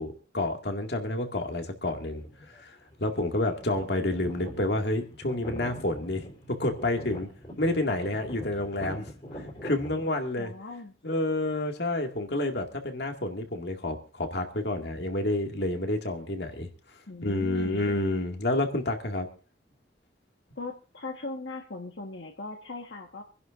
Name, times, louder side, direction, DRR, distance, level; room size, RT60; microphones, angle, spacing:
voice 1, 0.0-2.2 2.6-2.8 3.0-7.3 7.6-9.1 9.6-10.5 11.0-16.7 17.2-19.3, left 1 dB, 60° left, 4 dB, 2.0 m, -29 dB
sound 1, 2.0-2.6 2.9-10.0, equal, 35° left, 4.1 m, -42 dB
voice 2, 10.4-10.9 17.1-17.9 20.6-23.2, left 3 dB, 80° left, 2 dB, 1.4 m, -39 dB
26.5 x 11.0 x 2.5 m, 0.35 s
head